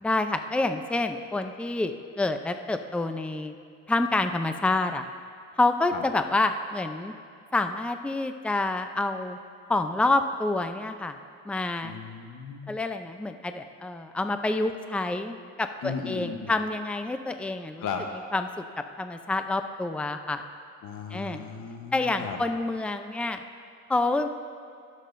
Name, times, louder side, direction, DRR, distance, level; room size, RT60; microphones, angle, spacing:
voice 1, 0.0-3.5 3.9-5.0 5.6-7.1 7.5-9.4 9.7-11.2 11.5-12.0 12.7-17.9 18.3-18.5 19.0-20.4 21.1-21.4 21.9-23.4 23.9-24.3, left 2 dB, 5° left, 7 dB, 0.5 m, -27 dB
voice 2, 11.8-12.7 15.8-16.5 17.8-18.0 20.8-22.4, left 6 dB, 85° left, 4 dB, 1.0 m, -36 dB
21.0 x 7.6 x 2.6 m, 2.3 s
cardioid pair, 90°, 30 cm